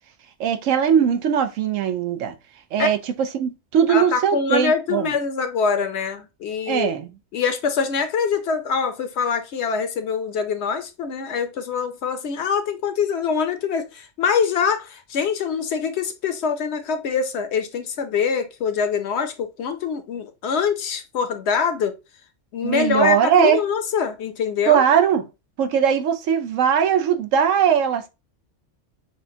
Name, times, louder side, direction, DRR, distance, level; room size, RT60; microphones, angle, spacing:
voice 1, 0.4-2.3 2.7-5.1 6.7-7.1 22.6-23.6 24.6-25.2 25.6-28.1, right 8 dB, 85° right, 1.0 m, -20 dB
voice 2, 3.9-6.9 7.3-21.9 22.5-24.8, left 6 dB, 65° left, 0.9 m, -24 dB
6.3 x 2.2 x 2.7 m
omnidirectional pair, 1.3 m